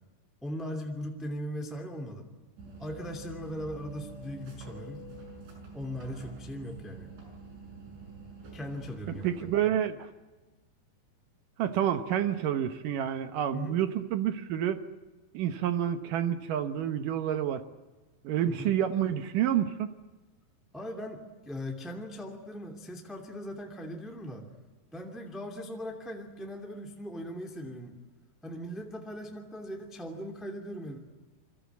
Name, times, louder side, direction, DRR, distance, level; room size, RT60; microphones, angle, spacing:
voice 1, 0.4-2.3 2.8-5.1 5.7-7.1 8.5-9.5 13.5-13.8 18.5-18.7 20.7-24.5 24.9-28.0 28.4-31.0, equal, ahead, 2 dB, 1.4 m, -39 dB
sound 1, 2.6-9.6, right 2 dB, 85° right, 8.8 m, -46 dB
voice 2, 9.2-10.1 11.6-14.8 15.3-17.6 18.2-19.9, right 10 dB, 70° right, 9 dB, 2.1 m, -29 dB
28.0 x 24.5 x 8.4 m, 1.2 s
omnidirectional pair, 5.1 m